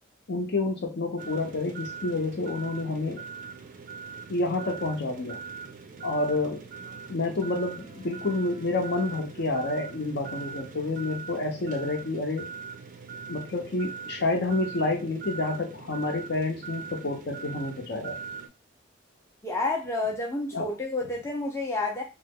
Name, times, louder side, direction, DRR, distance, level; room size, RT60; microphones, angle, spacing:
voice 1, 0.3-3.3 4.3-5.4 6.0-6.6 7.1-12.5 13.3-18.2 20.5-20.7, left 2 dB, 55° left, 0.7 m, -29 dB
sound 1, 1.2-18.5, right 6 dB, 40° right, 0.4 m, -42 dB
voice 2, 19.4-22.0, left 2 dB, 15° left, 0.5 m, -29 dB
3.0 x 2.0 x 3.6 m
head